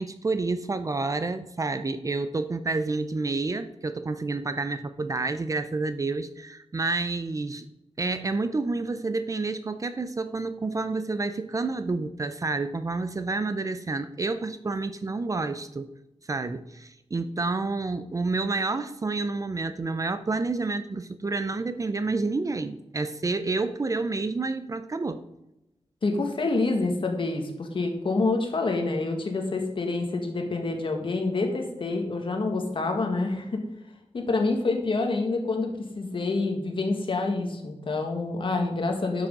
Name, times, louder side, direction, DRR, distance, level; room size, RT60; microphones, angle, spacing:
voice 1, 0.0-7.7 8.0-15.9 16.3-25.2, right 3 dB, 30° right, 11 dB, 0.5 m, -29 dB
voice 2, 26.0-33.6 34.1-39.3, left 3 dB, 50° left, 3 dB, 1.7 m, -27 dB
11.5 x 6.3 x 5.3 m, 0.88 s
wide cardioid pair, 150°, 11 cm